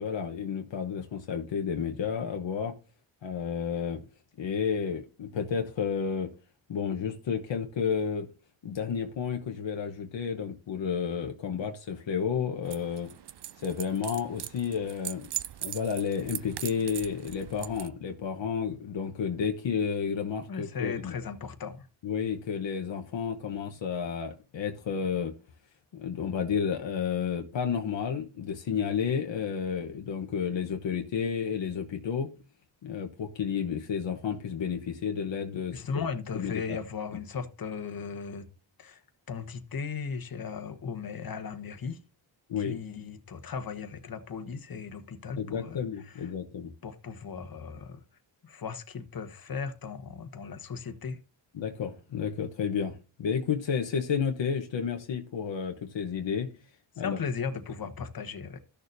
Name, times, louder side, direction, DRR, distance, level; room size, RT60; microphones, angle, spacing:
voice 1, 0.0-2.7 3.2-4.0 4.4-6.3 6.7-8.3 8.6-13.1 13.6-15.3 15.6-21.1 22.0-25.3 25.9-32.3 32.8-36.0 36.3-36.8 42.5-42.8 45.4-46.7 51.5-56.5 57.0-57.2, left 7 dB, 70° left, 1.1 m, -31 dB
sound 1, 12.6-17.9, right 11 dB, 60° right, 0.6 m, -40 dB
voice 2, 20.5-21.9 35.7-38.5 38.8-39.0 39.3-42.0 42.6-46.3 46.8-48.0 48.4-51.2 57.0-58.6, left 5 dB, 50° left, 1.3 m, -37 dB
13.5 x 6.7 x 2.6 m
cardioid pair, 75°, 46 cm